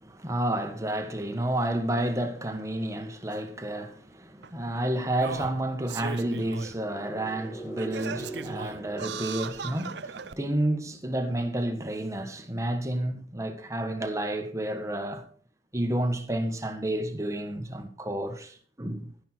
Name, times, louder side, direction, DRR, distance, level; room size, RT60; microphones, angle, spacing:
voice 1, 0.0-15.3 15.7-19.1, right 1 dB, 15° right, 1.4 m, -30 dB
Singing, 3.3-3.4 4.4-4.5 5.1-6.8 7.2-7.3 7.8-10.4 11.1-11.2, right 5 dB, 70° right, 0.7 m, -38 dB
sound 1, 6.6-10.4, right 2 dB, 30° left, 3.1 m, -42 dB
11.5 x 10.0 x 4.5 m
head